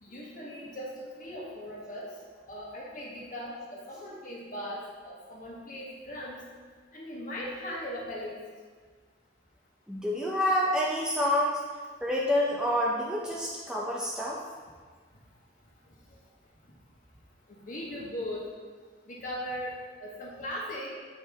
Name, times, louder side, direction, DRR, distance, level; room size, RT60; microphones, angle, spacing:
voice 1, 0.0-2.1 2.5-6.4 6.9-8.4 17.6-18.4 19.1-19.7 20.0-20.9, equal, 45° left, -4 dB, 1.5 m, -38 dB
voice 2, 9.9-11.6 12.0-14.4, left 1 dB, 5° right, -4 dB, 0.6 m, -28 dB
8.3 x 5.3 x 3.5 m, 1.5 s
head